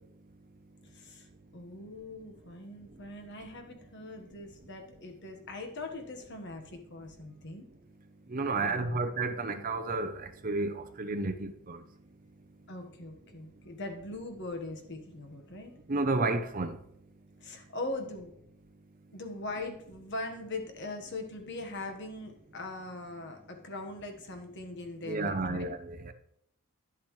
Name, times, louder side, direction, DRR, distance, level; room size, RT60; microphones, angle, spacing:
voice 1, 0.8-1.3 1.5-7.6 8.6-9.0 12.7-15.7 17.4-18.3 19.1-25.7, left 2 dB, 55° left, 1.4 m, -41 dB
voice 2, 8.3-11.8 15.9-16.8 25.0-26.1, right 3 dB, 40° right, 0.7 m, -31 dB
11.0 x 7.4 x 3.2 m
head